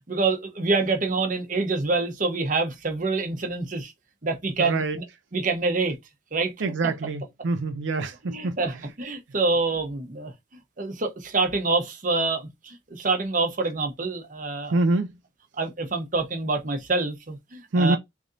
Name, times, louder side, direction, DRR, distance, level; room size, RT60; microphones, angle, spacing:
voice 1, 0.1-3.9 4.2-5.0 5.3-5.9 6.3-6.5 8.2-10.3 10.8-14.8 15.6-18.0, right 3 dB, 45° right, 0.9 m, -26 dB
voice 2, 4.6-5.0 6.6-8.6 14.7-15.1 17.7-18.0, right 2 dB, 90° right, 0.5 m, -25 dB
3.3 x 2.6 x 3.7 m
head